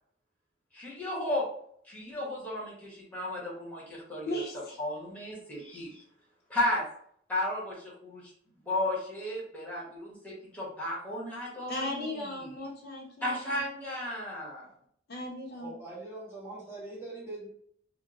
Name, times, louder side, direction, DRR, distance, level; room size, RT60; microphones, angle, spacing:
voice 1, 0.7-1.4 1.8-4.4 4.8-6.0 6.5-6.9 7.3-8.3 8.6-12.6 13.2-14.7, left 1 dB, 10° left, -6 dB, 1.2 m, -34 dB
voice 2, 4.3-4.8 11.7-13.6 15.1-15.7, left 1 dB, 55° left, -2 dB, 0.7 m, -37 dB
voice 3, 15.6-17.5, right 2 dB, 15° right, -7 dB, 1.1 m, -42 dB
2.8 x 2.2 x 3.6 m, 0.66 s
head